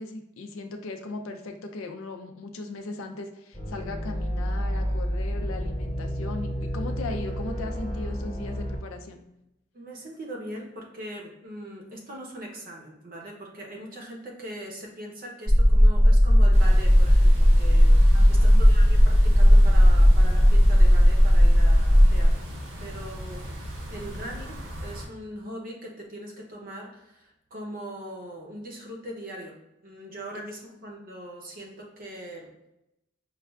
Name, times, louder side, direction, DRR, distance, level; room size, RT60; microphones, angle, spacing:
voice 1, 0.0-9.3 18.1-18.6 30.3-30.4, left 3 dB, 80° left, 5 dB, 0.4 m, -38 dB
sound 1, 3.5-8.8, equal, 20° left, 0.9 m, -30 dB
voice 2, 9.7-22.5 22.8-24.6 24.8-29.5 29.8-32.5, right 1 dB, 45° right, -1 dB, 0.6 m, -40 dB
sound 2, 15.5-22.3, equal, 10° right, 0.3 m, -16 dB
sound 3, 16.5-25.1, equal, 90° right, 0.9 m, -38 dB
5.3 x 2.3 x 2.3 m, 0.90 s
head